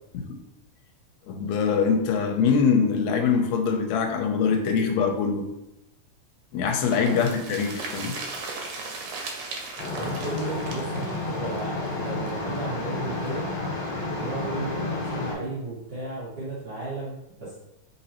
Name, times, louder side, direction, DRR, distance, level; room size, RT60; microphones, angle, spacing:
voice 1, 1.3-5.5 6.5-8.2, left 6 dB, 80° left, 4 dB, 1.7 m, -23 dB
sound 1, 6.8-12.6 12.9-13.0 13.2-13.3, right 3 dB, 85° right, 2.1 m, -37 dB
voice 2, 7.0-7.3 9.9-13.5 14.2-17.6, right 2 dB, 45° right, -10 dB, 1.4 m, -34 dB
sound 2, 9.8-15.3, left 2 dB, 65° left, 1.5 m, -31 dB
4.0 x 3.8 x 2.8 m, 0.86 s
omnidirectional pair, 3.3 m